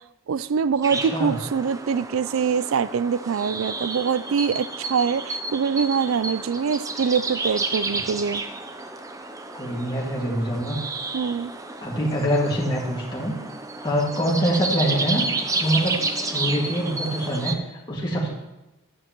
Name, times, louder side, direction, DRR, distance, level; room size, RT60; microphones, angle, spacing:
voice 1, 0.3-8.4 11.1-11.5, right 6 dB, 70° right, 17 dB, 0.4 m, -24 dB
sound 1, 0.8-17.6, right 3 dB, 15° right, 0.5 m, -31 dB
voice 2, 1.0-1.4 9.5-10.8 11.8-13.4 13.8-15.3 15.5-17.6 17.9-18.3, equal, 20° left, -4 dB, 1.9 m, -24 dB
11.5 x 9.7 x 3.0 m, 1.0 s
head